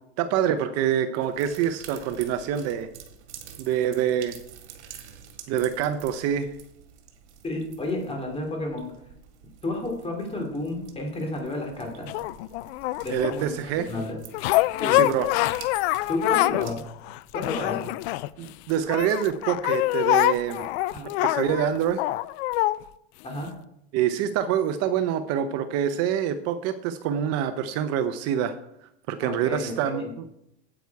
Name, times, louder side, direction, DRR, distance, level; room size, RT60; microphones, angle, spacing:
voice 1, 0.2-2.9 3.6-4.4 5.5-6.5 13.1-13.9 14.9-15.3 18.4-20.7 21.0-22.0 23.9-28.6 29.1-30.3, right 9 dB, 45° right, 11 dB, 0.6 m, -26 dB
sound 1, 1.2-16.7, right 8 dB, 85° right, 1.8 m, -48 dB
voice 2, 7.4-8.9 9.6-12.1 13.0-13.6 13.9-14.2 14.8-15.0 16.1-16.8 17.3-17.9 20.9-21.1 23.2-23.5 29.2-30.1, left 2 dB, 15° left, 2 dB, 2.6 m, -31 dB
sound 2, 12.1-13.4 14.3-16.7 17.0-18.5 18.9-22.8 23.5-23.6, left 18 dB, 70° left, 0.5 m, -25 dB
9.0 x 8.3 x 4.7 m, 0.80 s
supercardioid pair, 135°, 34 cm